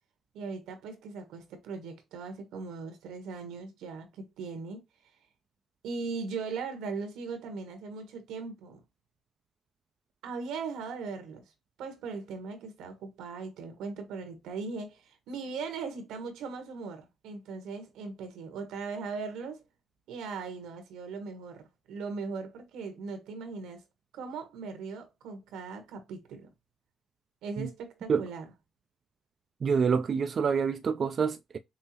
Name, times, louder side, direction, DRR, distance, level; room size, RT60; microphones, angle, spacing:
voice 1, 0.3-4.8 5.8-8.8 10.2-11.4 11.8-19.6 20.1-23.8 24.1-26.5 27.4-28.5, right 4 dB, 90° right, 1.2 m, -39 dB
voice 2, 29.6-31.6, right 6 dB, 50° right, 0.4 m, -27 dB
5.4 x 2.0 x 2.8 m
cardioid pair, 90°, 0 cm